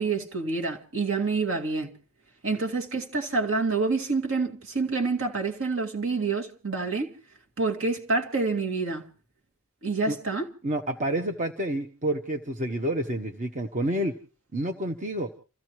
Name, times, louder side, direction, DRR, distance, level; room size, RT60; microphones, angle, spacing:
voice 1, 0.0-1.9 2.4-7.1 7.6-9.0 9.8-10.5, right 3 dB, 65° right, 2.1 m, -27 dB
voice 2, 10.6-14.1 14.5-15.3, right 1 dB, 35° right, 1.0 m, -29 dB
29.5 x 15.0 x 3.1 m
head